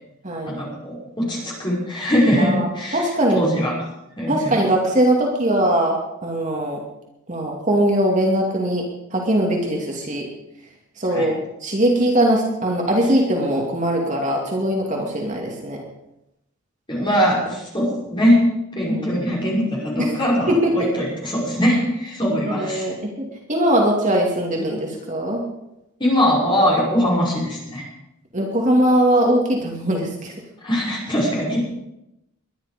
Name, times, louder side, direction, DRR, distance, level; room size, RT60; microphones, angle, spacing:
voice 1, 0.5-3.0 3.3-3.7 4.2-4.6 11.1-11.3 16.9-22.9 26.0-27.9 30.6-31.6, equal, 20° left, -4 dB, 5.8 m, -21 dB
voice 2, 2.4-2.7 2.9-3.4 4.3-6.8 7.3-8.8 9.1-10.3 11.0-15.8 18.8-19.3 20.0-20.2 20.5-20.9 22.3-25.4 28.3-30.3, right 1 dB, 35° right, -1 dB, 2.5 m, -21 dB
22.0 x 11.0 x 5.2 m, 0.87 s
head